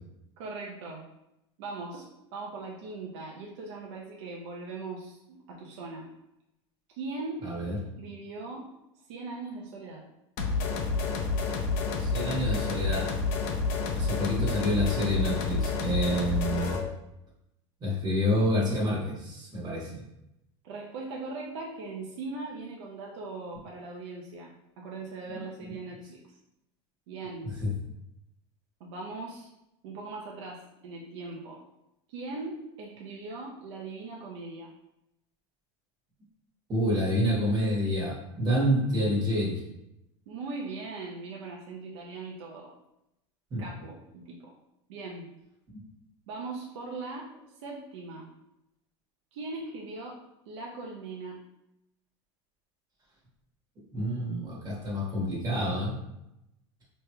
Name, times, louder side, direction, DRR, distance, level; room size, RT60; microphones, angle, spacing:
voice 1, 0.4-1.0 1.6-6.1 6.9-8.7 9.1-10.0 20.6-26.2 27.1-27.5 28.8-29.5 29.8-31.6 32.1-34.7 40.3-42.7 43.6-44.5 44.9-45.3 46.3-47.3 47.6-48.3 49.3-50.2 50.5-51.4, right 3 dB, 70° right, -2 dB, 0.7 m, -40 dB
voice 2, 7.4-7.8 12.0-13.1 13.9-16.8 17.8-20.0 25.6-25.7 27.4-27.7 36.7-39.6 43.5-43.6 53.9-55.9, equal, 25° right, -5 dB, 1.5 m, -28 dB
sound 1, 10.4-16.9, left 4 dB, 55° left, 0.7 m, -29 dB
5.1 x 3.1 x 2.2 m, 0.87 s
supercardioid pair, 135°, 15 cm